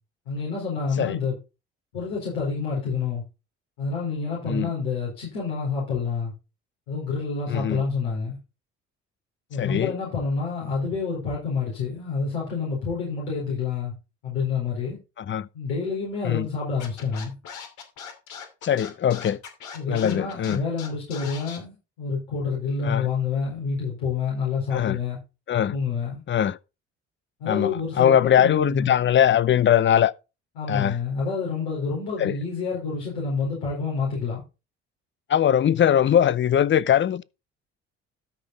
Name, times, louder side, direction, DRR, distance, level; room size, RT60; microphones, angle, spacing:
voice 1, 0.3-1.4 1.9-3.2 3.8-6.3 6.9-8.4 9.5-13.9 14.2-15.0 15.5-17.4 19.7-25.2 25.7-26.2 27.4-28.9 30.6-34.4, left 5 dB, 85° left, 4.6 m, -28 dB
voice 2, 7.5-7.8 9.6-9.9 15.2-15.5 16.2-16.5 18.6-19.4 19.9-20.6 22.8-23.1 24.7-25.0 25.5-25.7 26.3-26.6 27.5-30.1 30.7-31.0 32.2-32.4 35.3-37.2, left 9 dB, 35° left, 0.6 m, -21 dB
Scratching (performance technique), 16.8-21.6, left 7 dB, 70° left, 2.8 m, -39 dB
13.0 x 5.3 x 4.1 m
hypercardioid pair, 60°, 31 cm